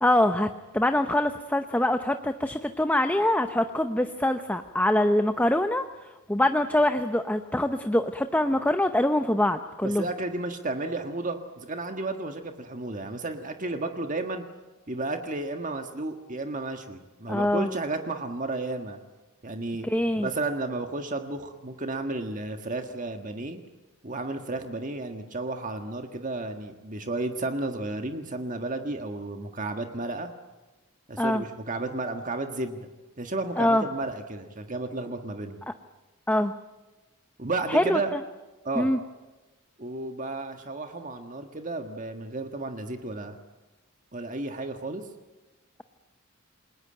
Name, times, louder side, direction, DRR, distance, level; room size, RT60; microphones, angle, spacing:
voice 1, 0.0-5.8 6.3-10.1 17.3-17.7 19.8-20.3 31.2-31.4 33.6-33.8 35.7-35.8 36.3-36.5 37.7-38.2 38.8-39.0, left 1 dB, 5° left, 8 dB, 0.8 m, -24 dB
voice 2, 9.8-14.4 14.9-19.0 19.4-19.9 20.1-23.6 24.0-30.3 31.1-32.9 33.2-35.6 37.4-38.1 38.6-38.9 39.8-43.4 44.1-45.0, right 2 dB, 35° right, 5 dB, 1.6 m, -32 dB
28.5 x 21.0 x 8.9 m, 1.1 s
head